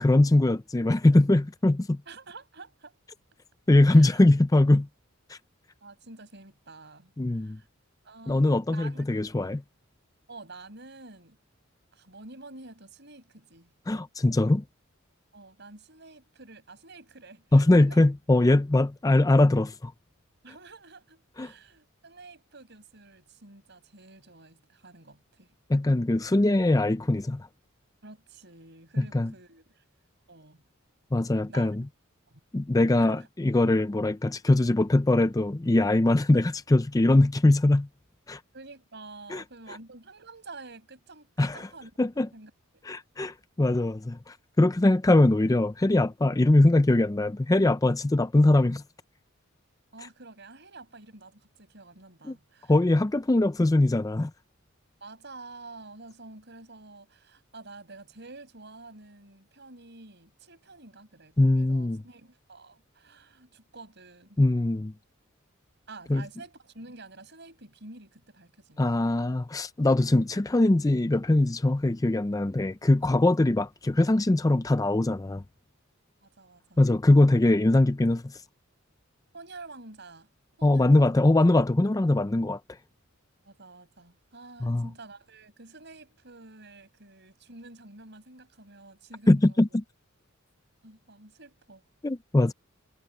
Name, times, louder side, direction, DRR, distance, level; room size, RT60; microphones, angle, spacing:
voice 1, 0.0-2.0 3.7-4.9 5.3-5.4 7.2-7.6 8.3-9.6 13.9-14.6 17.5-19.9 21.4-21.5 25.7-27.5 29.1-29.3 31.1-31.8 32.5-37.9 38.3-38.4 39.3-39.4 41.4-41.7 42.0-42.3 42.9-48.8 52.3-52.4 52.7-54.3 61.4-62.0 64.4-64.9 66.1-66.2 68.8-75.4 76.8-78.3 80.6-82.6 84.6-84.9 89.3-89.7 92.0-92.5, left 2 dB, 15° left, 0.4 m, -22 dB
voice 2, 2.1-2.9 3.9-4.2 5.8-7.7 8.0-9.3 10.3-11.4 11.9-13.7 15.3-18.0 20.4-25.5 28.0-29.8 30.3-30.6 31.5-31.8 32.3-32.4 32.9-33.3 38.5-41.9 42.2-42.8 49.9-52.8 55.0-64.4 65.9-68.9 76.2-76.8 79.3-80.3 80.6-81.1 83.4-89.8 90.8-91.8, right 3 dB, 55° right, 5.9 m, -48 dB
head